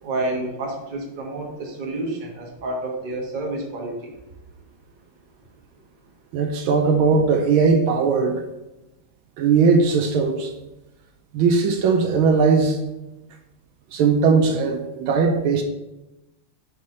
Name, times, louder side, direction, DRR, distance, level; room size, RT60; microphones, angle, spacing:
voice 1, 0.0-4.1, right 2 dB, 35° right, -1 dB, 0.8 m, -29 dB
voice 2, 6.3-8.4 9.4-10.5 11.3-12.8 13.9-15.6, right 5 dB, 75° right, 5 dB, 1.3 m, -19 dB
5.3 x 4.1 x 4.7 m, 0.98 s
omnidirectional pair, 2.4 m